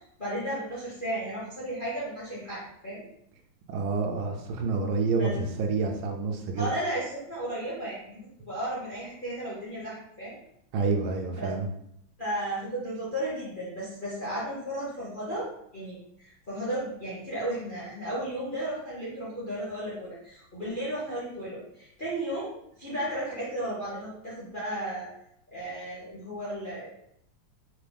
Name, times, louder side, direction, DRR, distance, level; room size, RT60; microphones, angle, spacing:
voice 1, 0.2-3.0 5.2-5.3 6.5-8.2 8.5-10.4 11.3-11.5 12.2-22.5 22.8-25.1 25.5-27.0, right 1 dB, 40° left, -8 dB, 0.8 m, -34 dB
voice 2, 3.7-6.7 10.7-11.7, right 4 dB, 75° right, 3 dB, 1.4 m, -28 dB
3.8 x 3.4 x 3.4 m, 0.75 s
omnidirectional pair, 2.4 m